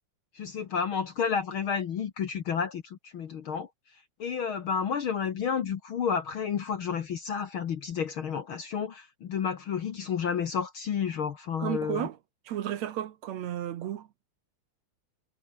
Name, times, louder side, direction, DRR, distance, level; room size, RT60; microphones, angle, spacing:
voice 1, 0.3-3.7 4.2-12.1, left 7 dB, 55° left, 1.6 m, -31 dB
voice 2, 11.6-12.2 12.5-14.1, right 11 dB, 65° right, 2.2 m, -33 dB
omnidirectional pair, 3.6 m